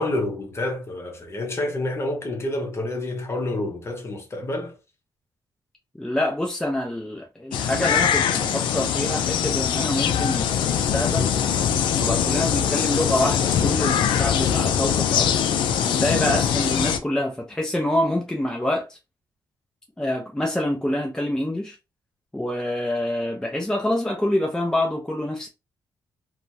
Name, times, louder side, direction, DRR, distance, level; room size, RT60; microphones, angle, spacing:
voice 1, 0.0-4.8, left 1 dB, 35° left, 0.9 m, -28 dB
voice 2, 6.0-11.3 12.0-15.4 15.8-19.0 20.0-21.8 22.3-25.5, left 1 dB, 10° left, 0.6 m, -26 dB
sound 1, 7.5-17.0, left 8 dB, 85° left, 0.4 m, -22 dB
2.9 x 2.2 x 2.7 m
cardioid pair, 85°, 8 cm